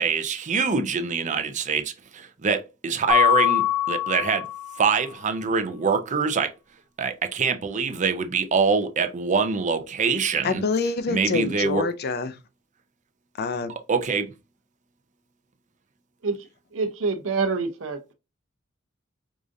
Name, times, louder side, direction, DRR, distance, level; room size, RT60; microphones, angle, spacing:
voice 1, 0.0-4.5 4.8-6.5 7.0-10.6 11.1-11.8 13.9-14.3, right 5 dB, 40° right, 0.5 m, -24 dB
Mallet percussion, 3.1-4.9, left 12 dB, 5° left, 0.9 m, -22 dB
voice 2, 10.4-12.4 13.4-13.7, left 4 dB, 50° left, 0.5 m, -26 dB
voice 3, 16.7-18.1, right 4 dB, 75° right, 0.7 m, -27 dB
4.8 x 2.5 x 2.6 m
head